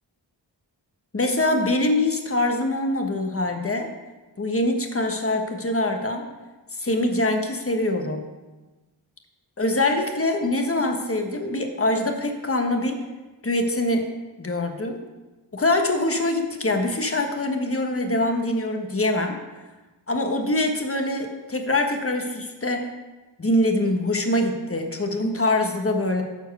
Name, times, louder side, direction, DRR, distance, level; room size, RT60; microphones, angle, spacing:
voice 1, 1.1-3.9 4.4-6.2 6.7-8.2 9.6-13.0 13.4-14.1 14.4-15.0 15.5-19.4 20.1-22.9 23.4-26.2, left 1 dB, 30° left, 4 dB, 1.3 m, -24 dB
11.5 x 4.5 x 6.6 m, 1.2 s
wide cardioid pair, 75°, 43 cm